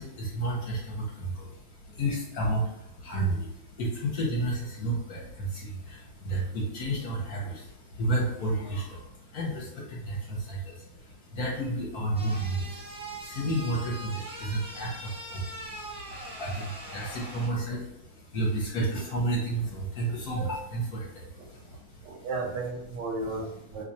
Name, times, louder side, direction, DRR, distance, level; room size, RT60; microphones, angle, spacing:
voice 1, 0.0-22.2, right 1 dB, 60° left, -3 dB, 1.1 m, -32 dB
sound 1, 12.2-17.5, right 1 dB, 10° right, 0.3 m, -42 dB
voice 2, 21.4-23.8, right 3 dB, 70° right, 0 dB, 1.1 m, -35 dB
3.1 x 2.4 x 4.0 m, 0.84 s
omnidirectional pair, 2.2 m